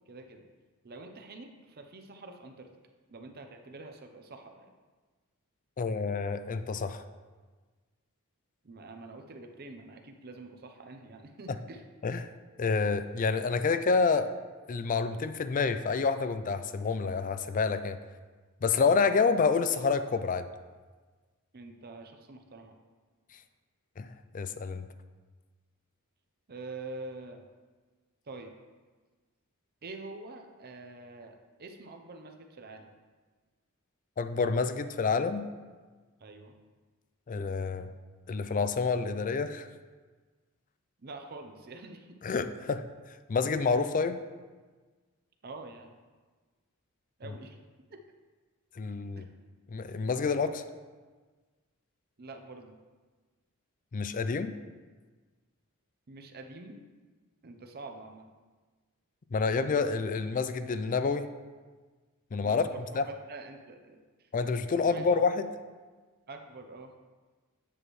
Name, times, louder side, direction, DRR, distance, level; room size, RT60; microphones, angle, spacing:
voice 1, 0.1-0.5 0.8-2.7 3.1-4.7 8.6-11.8 21.5-22.8 26.5-27.4 28.2-28.5 29.8-32.9 36.2-36.5 41.0-42.2 45.4-45.9 47.2-47.6 47.9-48.0 49.2-49.3 52.2-52.8 56.1-56.8 57.4-58.3 62.4-64.3 64.8-65.1 66.3-66.9, right 3 dB, 45° right, 4 dB, 0.7 m, -46 dB
voice 2, 5.8-7.0 12.0-12.2 12.6-14.3 14.7-18.0 18.6-20.5 24.0-24.1 24.3-24.9 34.2-35.5 37.3-37.9 38.3-39.7 42.2-42.8 43.3-44.2 48.8-49.2 49.7-50.6 53.9-54.5 59.3-61.3 62.3-62.6 63.0-63.1 64.3-65.5, left 4 dB, 40° left, 11 dB, 0.4 m, -28 dB
8.1 x 7.7 x 3.1 m, 1.4 s
head